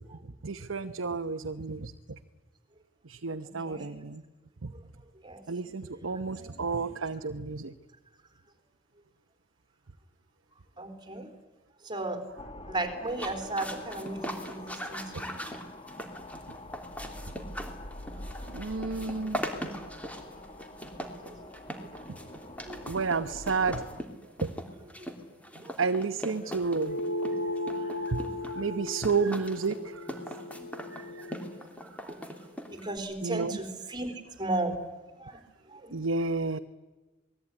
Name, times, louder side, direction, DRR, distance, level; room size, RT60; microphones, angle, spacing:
voice 1, 0.4-2.2 3.1-4.2 4.6-4.7 5.5-7.7 18.5-19.4 22.9-23.8 24.4-24.5 25.8-27.0 28.1-28.2 28.6-30.2 30.9-31.3 33.2-33.6 35.9-36.6, right 4 dB, 80° right, 7 dB, 0.9 m, -31 dB
voice 2, 3.4-3.9 4.7-4.8 5.2-6.9 10.8-11.3 11.8-12.2 12.7-15.3 18.1-18.5 19.1-19.2 20.9-21.2 22.7-22.9 25.0-25.1 25.6-25.7 27.8-28.3 30.5-31.1 31.4-31.7 32.0-32.2 32.7-34.8 35.2-35.4 35.7-36.0, right 2 dB, 25° right, 8 dB, 3.9 m, -37 dB
sound 1, 12.4-24.0, left 1 dB, 30° left, 1.6 m, -45 dB
sound 2, 13.1-33.0, equal, 5° left, 3.2 m, -40 dB
sound 3, 26.7-31.5, left 2 dB, 85° left, 3.5 m, -36 dB
27.5 x 20.5 x 9.8 m, 1.2 s
head